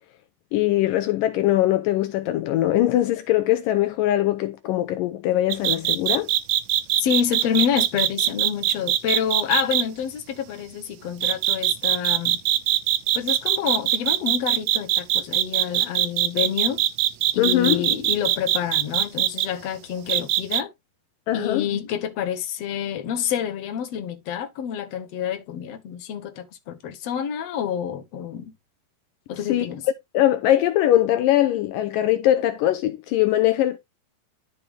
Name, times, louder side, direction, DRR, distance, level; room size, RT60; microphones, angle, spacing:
voice 1, 0.5-6.3 17.4-17.9 21.3-21.7 29.5-29.7 30.1-33.8, left 13 dB, 80° left, 2.2 m, -21 dB
sound 1, 5.5-9.8 11.2-19.5 20.1-20.6, right 13 dB, 75° right, 1.9 m, -21 dB
voice 2, 7.0-12.4 13.2-16.8 17.3-20.7 21.3-28.5 29.3-29.8, left 8 dB, 55° left, 2.2 m, -28 dB
12.5 x 4.9 x 3.4 m
omnidirectional pair, 4.1 m